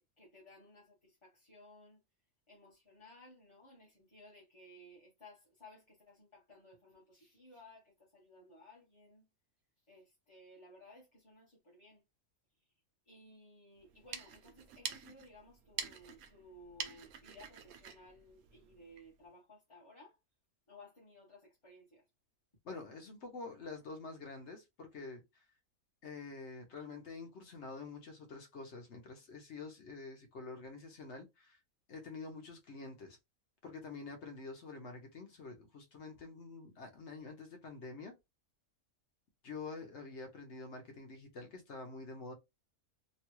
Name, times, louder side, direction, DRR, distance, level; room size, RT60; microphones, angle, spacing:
voice 1, 0.0-2.0 2.5-9.3 9.9-12.0 12.6-12.7 13.0-20.2 20.7-22.0, left 1 dB, 25° left, 0.8 m, -58 dB
sound 1, 13.8-19.1, right 7 dB, 80° right, 1.1 m, -46 dB
voice 2, 22.6-25.4 26.0-31.6 31.9-33.2 33.6-38.1 39.4-42.3, left 3 dB, 55° left, 1.0 m, -47 dB
3.0 x 2.3 x 3.0 m
omnidirectional pair, 1.5 m